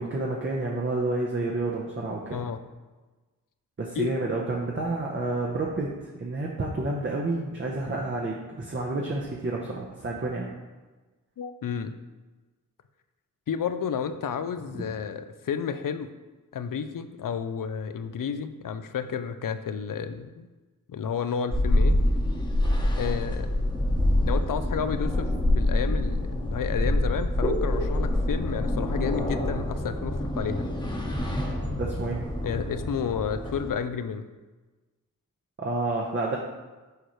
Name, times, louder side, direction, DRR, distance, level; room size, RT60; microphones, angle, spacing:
voice 1, 0.0-2.4 3.8-5.9 6.2-10.5 31.7-32.2 35.6-36.4, right 2 dB, 35° right, -2 dB, 0.8 m, -29 dB
voice 2, 2.3-2.6 4.0-4.1 11.4-11.9 13.5-16.1 16.5-20.5 20.9-22.0 22.8-23.5 24.2-25.3 25.6-30.7 32.4-34.3, left 7 dB, 70° left, 10 dB, 0.5 m, -31 dB
sound 1, 21.5-33.7, left 1 dB, 15° left, 1.0 m, -26 dB
6.5 x 4.7 x 3.1 m, 1.2 s
cardioid pair, 60°, 34 cm